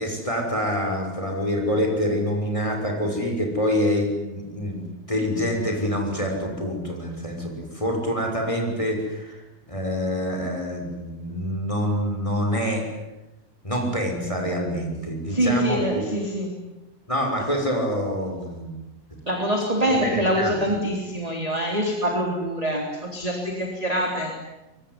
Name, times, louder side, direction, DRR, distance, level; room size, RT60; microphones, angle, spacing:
voice 1, 0.0-9.4 9.7-12.9 13.6-16.0 17.1-18.8 20.0-20.5, equal, 10° left, 2 dB, 5.9 m, -26 dB
voice 2, 15.3-16.5 19.3-24.3, equal, 10° right, 1 dB, 3.6 m, -25 dB
25.0 x 23.5 x 9.9 m, 1.0 s
omnidirectional pair, 4.1 m